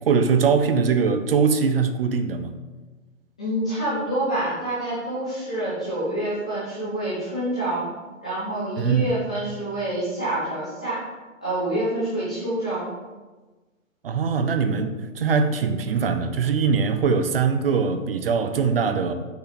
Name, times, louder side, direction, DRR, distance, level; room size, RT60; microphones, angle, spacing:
voice 1, 0.0-2.5 8.8-9.1 14.0-19.1, right 5 dB, 45° right, 0.6 m, -22 dB
voice 2, 3.4-7.8 8.2-11.0 11.4-12.9, right 1 dB, 5° left, 0.4 m, -27 dB
6.3 x 5.6 x 4.1 m
hypercardioid pair, 145°, 41 cm